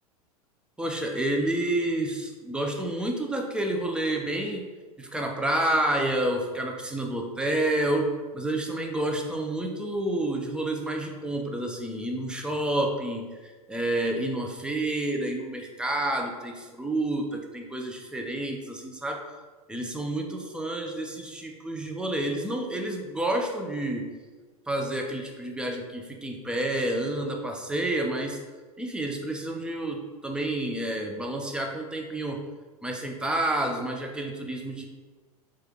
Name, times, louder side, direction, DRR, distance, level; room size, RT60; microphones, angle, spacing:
voice 1, 0.8-4.7 5.0-19.3 19.7-24.1 24.7-28.4 28.8-32.4 32.8-34.9, right 1 dB, 5° right, 2 dB, 0.5 m, -29 dB
4.5 x 2.4 x 3.3 m, 1.4 s
hypercardioid pair, 95°, 19 cm